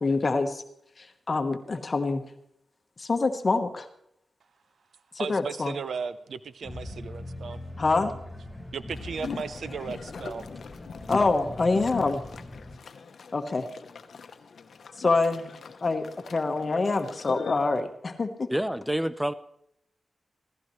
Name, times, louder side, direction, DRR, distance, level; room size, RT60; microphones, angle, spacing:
voice 1, 0.0-0.6 1.0-2.3 3.0-3.9 5.1-5.7 7.8-8.1 11.1-12.2 13.3-13.7 15.0-15.5 15.8-18.5, left 3 dB, 45° left, 1.1 m, -26 dB
voice 2, 5.2-7.6 8.7-10.5, right 5 dB, 75° right, 0.7 m, -36 dB
sound 1, 6.6-12.8, left 1 dB, 15° left, 4.2 m, -41 dB
sound 2, 8.9-17.8, left 5 dB, 70° left, 0.9 m, -41 dB
voice 3, 18.5-19.3, right 1 dB, 5° right, 0.6 m, -27 dB
16.5 x 14.5 x 3.2 m
cardioid pair, 50°, 0 cm